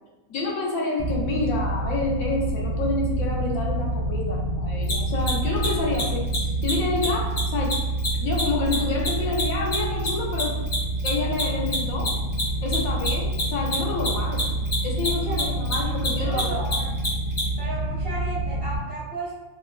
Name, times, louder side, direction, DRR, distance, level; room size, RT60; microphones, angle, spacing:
voice 1, 0.3-7.7 8.2-10.5 11.0-12.1 12.6-14.4 14.8-16.6, left 3 dB, 85° left, -2 dB, 1.1 m, -28 dB
sound 1, 1.0-18.8, right 2 dB, 40° left, 0.6 m, -27 dB
Mechanisms, 4.8-4.9 5.2-5.3 5.6-5.7 5.9-6.0 6.3-6.4 6.6-6.7 7.0-7.1 7.4-10.1 10.3-17.4, left 2 dB, 65° left, 1.4 m, -28 dB
voice 2, 15.0-17.1 17.6-19.3, right 3 dB, 60° right, -6 dB, 0.6 m, -35 dB
3.2 x 2.1 x 2.2 m, 1.1 s
omnidirectional pair, 1.4 m